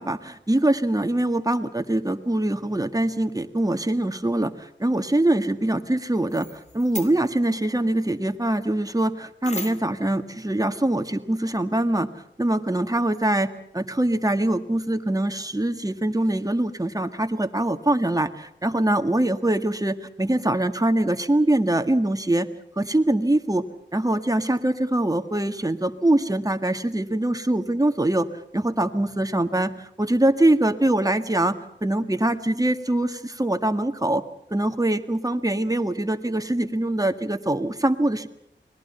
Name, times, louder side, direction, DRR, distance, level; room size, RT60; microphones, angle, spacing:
voice 1, 0.0-12.1 12.4-22.5 22.8-23.6 23.9-28.3 28.5-34.2 34.5-38.3, right 1 dB, 20° right, 7 dB, 1.8 m, -23 dB
sound 1, 6.3-7.3 9.4-10.0, left 2 dB, 35° left, 2.5 m, -37 dB
30.0 x 21.0 x 5.7 m, 0.74 s
wide cardioid pair, 80°, 20 cm